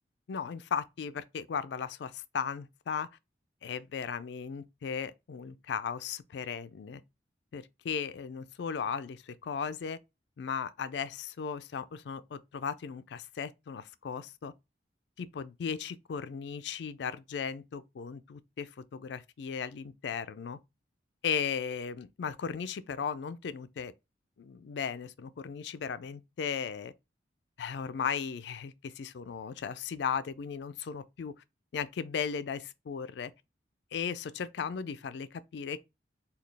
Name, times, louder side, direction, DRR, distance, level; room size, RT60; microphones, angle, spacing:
voice 1, 0.3-3.1 3.6-7.0 7.5-10.0 10.4-14.5 15.2-20.6 21.2-23.9 24.4-26.9 27.6-31.3 31.7-33.3 33.9-35.9, left 6 dB, 70° left, 0.3 m, -36 dB
3.9 x 2.3 x 3.3 m
head